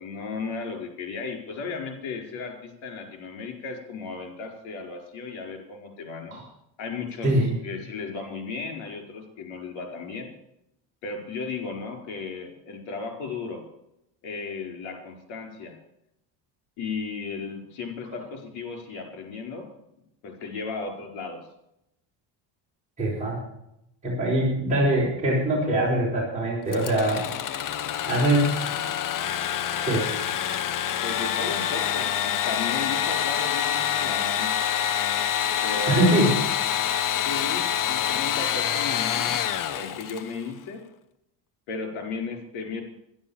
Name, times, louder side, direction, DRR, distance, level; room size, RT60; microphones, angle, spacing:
voice 1, 0.0-6.4 6.8-7.3 7.6-10.3 11.0-13.6 14.2-15.8 16.8-19.7 20.2-21.4 31.0-34.5 35.6-36.2 37.2-40.8 41.7-42.8, left 4 dB, 75° left, 4 dB, 5.0 m, -35 dB
voice 2, 7.2-7.5 23.0-23.4 24.0-27.2 28.1-28.6 29.8-30.1 35.9-36.3, right 1 dB, 15° right, -6 dB, 5.7 m, -23 dB
Engine / Sawing, 26.7-40.4, left 10 dB, 45° left, 1.0 m, -26 dB
12.0 x 11.5 x 7.3 m, 0.80 s
cardioid pair, 125°, 47 cm